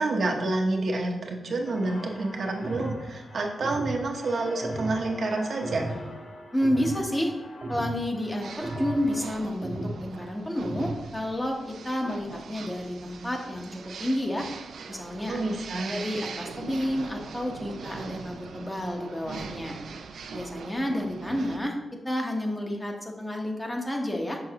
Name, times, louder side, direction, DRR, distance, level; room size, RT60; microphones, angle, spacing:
voice 1, 0.0-5.9 15.3-16.0, right 2 dB, 65° right, 1 dB, 1.0 m, -28 dB
sound 1, 1.6-9.2, left 1 dB, 60° left, 0.9 m, -44 dB
sound 2, 2.6-3.0 3.6-4.0 4.6-5.0 5.6-6.0 6.6-7.0 7.6-8.0 8.6-9.0 9.6-10.0 10.6-11.0, right 1 dB, 40° right, 0.9 m, -34 dB
voice 2, 6.5-7.3 7.7-14.5 14.9-15.4 15.9-19.8 20.3-21.8 22.0-24.4, left 1 dB, 15° left, 1 dB, 1.0 m, -30 dB
sound 3, 8.4-21.6, right 5 dB, 90° right, 0.5 m, -41 dB
6.4 x 5.4 x 2.9 m, 1.1 s
wide cardioid pair, 95°, 0 cm